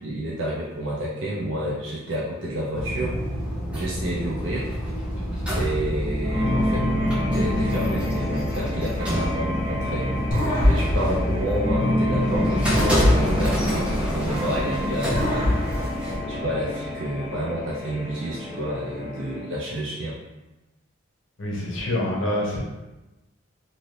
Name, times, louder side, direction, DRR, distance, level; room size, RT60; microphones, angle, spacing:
voice 1, 0.0-3.2 3.7-4.7 5.5-6.9 7.3-10.1 10.7-15.7 16.3-20.2, right 1 dB, 65° right, -5 dB, 0.5 m, -30 dB
sound 1, 2.7-16.2, equal, 5° right, 0.5 m, -28 dB
sound 2, 6.2-19.5, left 1 dB, 30° right, 1.2 m, -28 dB
sound 3, 10.3-12.2 12.7-14.6 15.1-16.8, left 1 dB, 45° left, 0.9 m, -25 dB
voice 2, 21.4-22.6, left 1 dB, 70° left, -3 dB, 0.7 m, -26 dB
2.6 x 2.6 x 3.2 m, 1.0 s
head